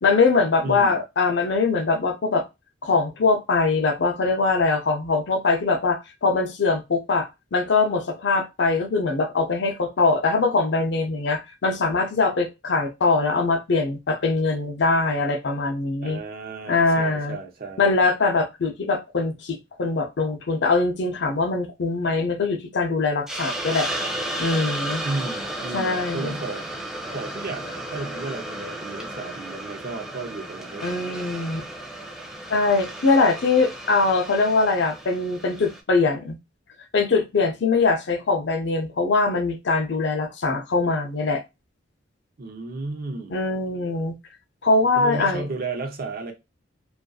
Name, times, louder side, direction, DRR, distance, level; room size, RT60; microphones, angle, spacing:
voice 1, 0.0-2.4 2.8-16.2 16.7-17.4 17.8-23.9 24.4-25.1 25.7-26.3 30.8-31.6 32.5-36.4 36.9-41.4 43.3-44.2 44.6-45.4, left 3 dB, 65° left, 0.5 m, -22 dB
voice 2, 0.6-1.0 16.0-18.0 25.0-26.7 27.1-31.4 42.4-43.3 45.0-46.3, right 3 dB, 55° right, 0.6 m, -33 dB
Hiss, 23.3-35.8, right 1 dB, 5° right, 0.4 m, -33 dB
2.5 x 2.4 x 2.3 m
head